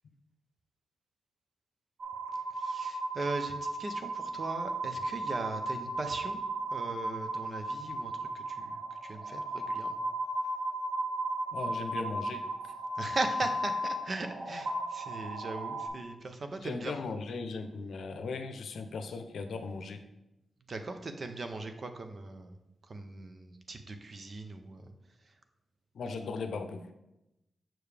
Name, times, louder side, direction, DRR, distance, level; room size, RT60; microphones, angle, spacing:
sound 1, 2.0-15.9, right 1 dB, 85° right, 1.5 m, -35 dB
voice 1, 2.5-6.4 6.7-8.7 9.0-9.9 13.0-17.0 20.7-22.5 22.9-24.8, right 3 dB, 40° right, 7 dB, 0.7 m, -39 dB
voice 2, 11.5-12.7 16.6-20.0 25.9-26.9, left 4 dB, 75° left, 8 dB, 0.6 m, -38 dB
6.8 x 6.0 x 3.4 m, 0.91 s
wide cardioid pair, 125°, 0 cm